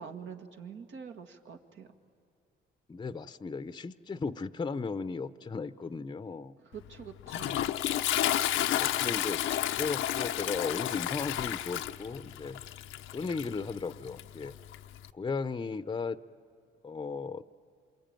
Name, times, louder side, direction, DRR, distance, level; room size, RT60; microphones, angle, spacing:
voice 1, 0.0-1.9 6.7-7.8, right 6 dB, 70° right, 5 dB, 2.0 m, -45 dB
voice 2, 2.9-6.6 8.7-9.4 9.7-12.6 13.1-14.5 15.1-16.2 16.8-17.4, left 4 dB, 20° left, 13 dB, 0.7 m, -36 dB
Toilet flush, 6.8-15.1, left 12 dB, 85° left, 0.7 m, -32 dB
27.5 x 23.5 x 9.0 m, 2.6 s
cardioid pair, 90°, 20 cm